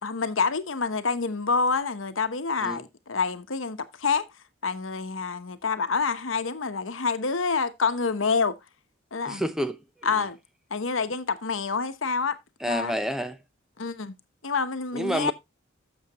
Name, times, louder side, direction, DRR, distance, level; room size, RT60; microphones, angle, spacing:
voice 1, 0.0-4.3 4.6-8.6 9.1-9.4 10.0-10.4 10.7-12.4 12.7-12.9 13.8-14.1 14.4-15.3, left 4 dB, 80° left, 1.0 m, -27 dB
voice 2, 9.3-9.8 12.6-13.4 14.9-15.3, equal, ahead, 0.7 m, -28 dB
11.5 x 7.2 x 3.0 m
head